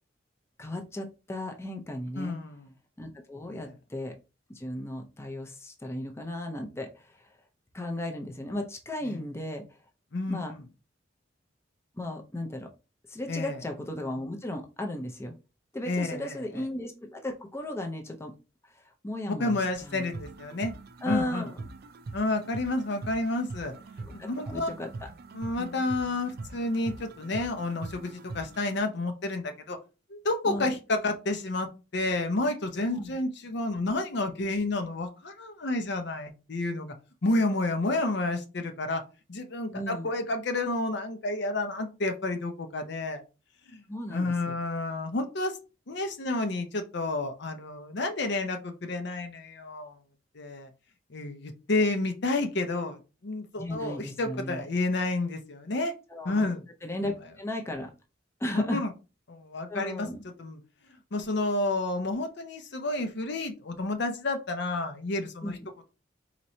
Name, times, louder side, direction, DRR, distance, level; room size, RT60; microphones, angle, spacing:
voice 1, 0.6-2.4 3.0-4.2 4.5-7.4 7.7-9.6 10.3-10.5 12.0-12.7 13.1-15.3 15.7-18.3 18.6-20.1 21.0-21.6 24.0-24.9 25.6-25.8 30.4-30.7 32.9-33.1 39.7-40.1 43.9-44.3 53.6-54.7 56.1-56.5 56.8-57.9 58.4-58.8 59.7-60.2 65.4-65.6, left 1 dB, 15° left, 3 dB, 0.5 m, -35 dB
voice 2, 2.2-2.6 3.5-3.7 9.0-9.2 10.1-10.6 13.3-13.6 15.9-16.3 19.3-20.7 21.0-21.5 22.1-23.7 24.1-24.7 25.3-29.8 30.1-36.9 37.2-39.0 39.3-43.2 43.7-43.8 44.1-45.6 45.9-50.0 50.3-50.7 51.1-55.9 56.2-56.6 58.5-58.9 59.3-60.1 60.4-60.6 61.1-65.6, left 2 dB, 65° left, 6 dB, 0.7 m, -30 dB
sound 1, 19.7-28.8, right 3 dB, 55° right, 0.4 m, -43 dB
4.3 x 3.0 x 2.7 m, 0.30 s
head